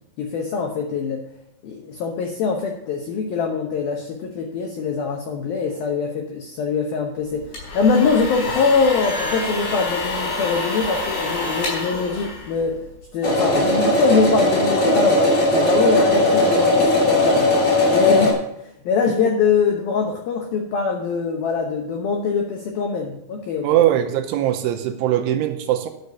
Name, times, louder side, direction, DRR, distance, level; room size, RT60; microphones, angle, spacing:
voice 1, 0.2-1.2 1.6-12.8 13.1-17.5 17.9-23.7, left 5 dB, 80° left, 2 dB, 2.1 m, -23 dB
sound 1, 7.3-13.0, left 2 dB, 55° left, 6.0 m, -28 dB
sound 2, 13.2-18.3, left 1 dB, 35° left, 3.2 m, -18 dB
voice 2, 23.6-25.9, right 12 dB, 85° right, 6 dB, 3.1 m, -20 dB
11.5 x 6.7 x 6.8 m, 0.80 s
omnidirectional pair, 5.8 m